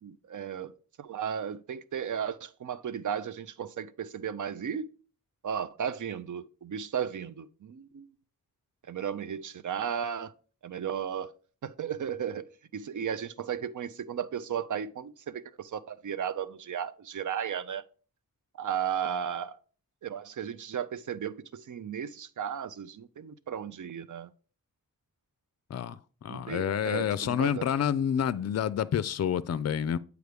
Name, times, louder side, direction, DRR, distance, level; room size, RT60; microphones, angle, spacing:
voice 1, 0.0-0.7 1.0-4.9 5.4-8.1 8.9-10.3 10.6-11.3 11.6-17.8 18.6-19.6 20.0-24.3 26.3-27.7, right 8 dB, 60° right, 0.5 m, -35 dB
voice 2, 25.7-30.0, left 9 dB, 50° left, 0.4 m, -29 dB
8.0 x 4.8 x 3.4 m
cardioid pair, 45°, 35 cm